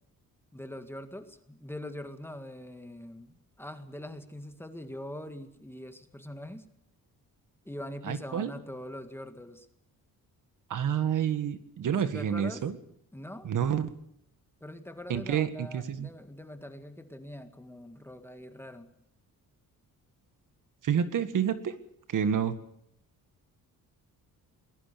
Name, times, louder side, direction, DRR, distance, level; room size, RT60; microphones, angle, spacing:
voice 1, 0.5-6.7 7.7-9.7 12.0-12.6 13.1-13.5 14.6-18.9, left 1 dB, 5° left, 7 dB, 1.8 m, -43 dB
voice 2, 8.0-8.5 10.7-12.7 13.4-13.9 15.1-16.1 20.8-21.8 22.1-22.6, right 8 dB, 60° right, 11 dB, 1.9 m, -29 dB
22.5 x 21.0 x 6.9 m, 0.73 s
wide cardioid pair, 160°, 36 cm